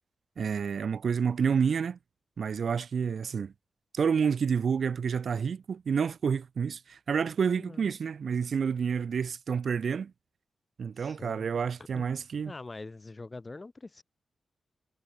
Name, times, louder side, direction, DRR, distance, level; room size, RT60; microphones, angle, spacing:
voice 1, 0.4-2.0 2.4-3.5 3.9-10.1 10.8-12.5, right 6 dB, 55° right, 0.3 m, -29 dB
voice 2, 7.6-7.9 11.0-11.5 11.9-12.1 12.4-14.0, left 3 dB, 20° left, 0.9 m, -44 dB
wide cardioid pair, 165°, 0 cm